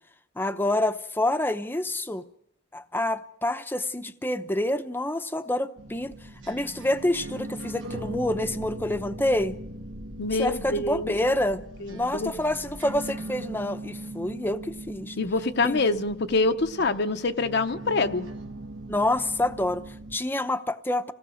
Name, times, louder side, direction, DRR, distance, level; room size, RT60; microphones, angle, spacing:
voice 1, 0.4-2.3 2.7-6.1 6.5-9.6 10.4-11.6 11.9-15.2 15.6-15.8 18.9-21.1, left 1 dB, 10° left, 0.8 m, -27 dB
sound 1, 5.8-20.2, right 1 dB, 70° right, 1.5 m, -40 dB
voice 2, 10.2-11.1 11.8-12.3 15.2-18.3, left 3 dB, 55° left, 0.8 m, -25 dB
26.0 x 17.5 x 6.4 m
head